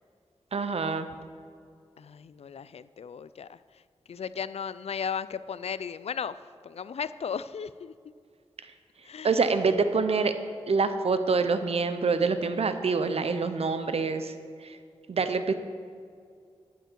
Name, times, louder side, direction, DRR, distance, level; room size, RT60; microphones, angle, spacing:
voice 1, 0.5-1.1 9.2-10.3 10.7-14.3 14.6-14.8 15.1-15.5, right 4 dB, 65° right, 9 dB, 0.8 m, -26 dB
voice 2, 2.0-3.8 4.1-6.4 6.6-7.9 9.0-9.4 13.2-14.1, left 7 dB, 70° left, 15 dB, 0.4 m, -36 dB
12.0 x 9.2 x 4.6 m, 2.3 s
wide cardioid pair, 85°, 11 cm